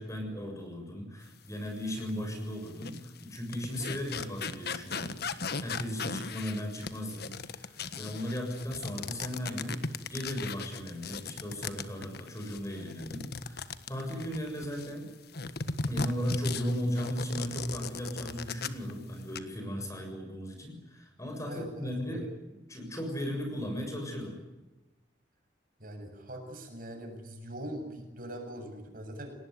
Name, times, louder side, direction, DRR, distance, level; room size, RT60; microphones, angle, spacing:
voice 1, 0.0-15.1 15.9-22.3 22.7-24.4, equal, 15° left, 3 dB, 7.0 m, -36 dB
sound 1, 2.0-2.1 2.7-14.9 15.3-18.9 19.2-19.4, left 4 dB, 55° left, 1.5 m, -38 dB
voice 2, 21.5-22.2 25.8-29.3, right 1 dB, 50° right, 5 dB, 7.4 m, -42 dB
29.5 x 19.5 x 9.6 m, 1.1 s
head